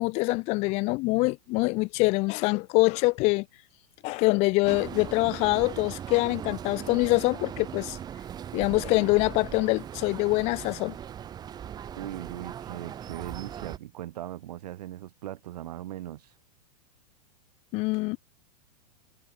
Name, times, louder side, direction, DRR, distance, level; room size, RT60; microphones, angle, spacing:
voice 1, 0.0-3.4 4.0-8.0 8.5-10.9 17.7-18.2, left 24 dB, 30° left, 0.9 m, -25 dB
sound 1, 4.6-13.8, right 9 dB, 20° right, 7.4 m, -39 dB
voice 2, 11.9-16.3, right 13 dB, 70° right, 4.2 m, -39 dB
supercardioid pair, 165°, 21 cm